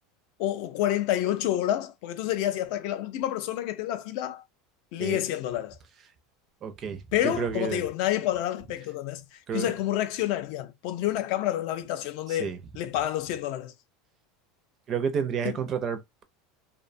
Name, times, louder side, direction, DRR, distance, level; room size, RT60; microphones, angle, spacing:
voice 1, 0.4-4.4 4.9-5.8 7.1-9.2 9.5-12.5 12.7-13.7, left 13 dB, 55° left, 0.4 m, -28 dB
voice 2, 6.6-7.9 9.5-9.7 12.3-12.6 14.9-16.2, right 7 dB, 30° right, 0.4 m, -31 dB
2.5 x 2.1 x 2.5 m
supercardioid pair, 155°, 0 cm